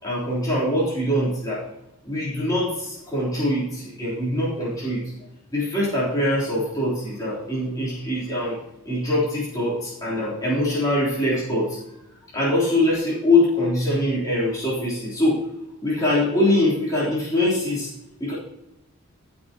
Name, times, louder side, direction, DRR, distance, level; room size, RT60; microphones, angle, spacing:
voice 1, 0.0-1.6 2.0-5.1 5.5-8.6 8.8-11.8 12.3-15.5 15.8-17.9 18.2-18.3, left 1 dB, 15° left, -9 dB, 3.5 m, -23 dB
14.0 x 6.8 x 2.9 m, 0.87 s
head